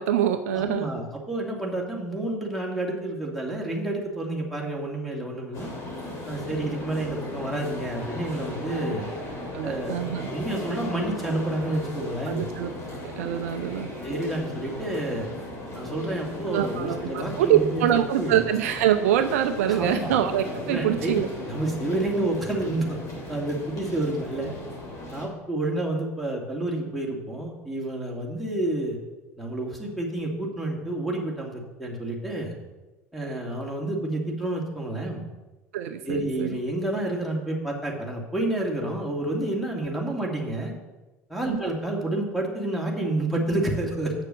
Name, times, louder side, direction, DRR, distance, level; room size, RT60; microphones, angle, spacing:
voice 1, 0.0-0.9 9.5-10.3 12.3-12.7 13.0-13.9 16.5-21.3 35.7-36.6 41.5-41.6, right 11 dB, 65° right, 8 dB, 0.6 m, -25 dB
voice 2, 0.5-5.7 6.3-9.1 9.6-12.5 14.0-15.3 15.7-17.8 18.2-18.4 19.7-20.1 20.6-21.1 21.5-23.0 23.3-24.5 25.1-29.0 29.4-32.5 33.1-35.2 36.1-40.7 41.3-44.1, right 1 dB, ahead, -1 dB, 2.7 m, -29 dB
sound 1, 5.5-25.3, left 1 dB, 40° left, 3.3 m, -36 dB
8.0 x 6.6 x 6.5 m, 1.1 s
figure-of-eight pair, 70°, 8 cm